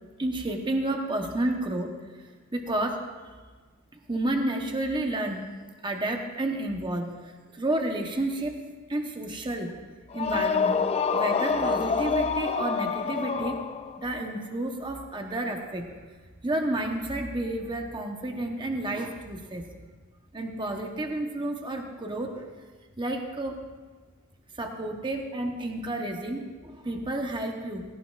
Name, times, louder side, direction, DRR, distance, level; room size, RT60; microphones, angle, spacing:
voice 1, 0.2-1.9 2.2-3.0 4.1-5.5 5.8-8.6 8.9-9.8 10.1-10.8 11.1-13.6 14.0-15.9 16.4-19.7 20.3-22.5 23.0-23.6 24.5-27.8, right 1 dB, 20° right, 3 dB, 1.0 m, -30 dB
sound 1, 10.1-14.1, left 5 dB, 30° left, 0.4 m, -27 dB
17.5 x 16.5 x 2.5 m, 1.4 s
head